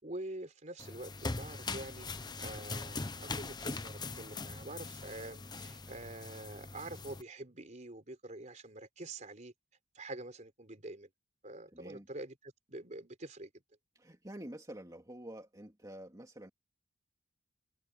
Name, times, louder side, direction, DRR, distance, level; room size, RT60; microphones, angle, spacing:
voice 1, 0.0-2.1 2.4-9.5 10.0-11.1 11.4-12.4 12.7-13.5, right 2 dB, 40° right, 3.9 m, -46 dB
sound 1, 0.8-7.2, left 3 dB, 20° left, 0.8 m, -41 dB
voice 2, 11.7-12.1 13.9-16.5, right 1 dB, 20° right, 2.4 m, -48 dB
head